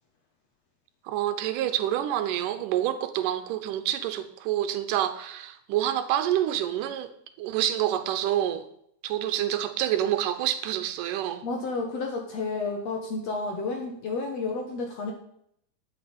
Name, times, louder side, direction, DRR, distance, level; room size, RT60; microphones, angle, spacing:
voice 1, 1.1-7.1 7.4-8.7 9.0-11.4, right 12 dB, 85° right, 2.3 m, -27 dB
voice 2, 11.4-15.1, left 3 dB, 60° left, 2.1 m, -31 dB
12.0 x 8.0 x 5.2 m
omnidirectional pair, 3.7 m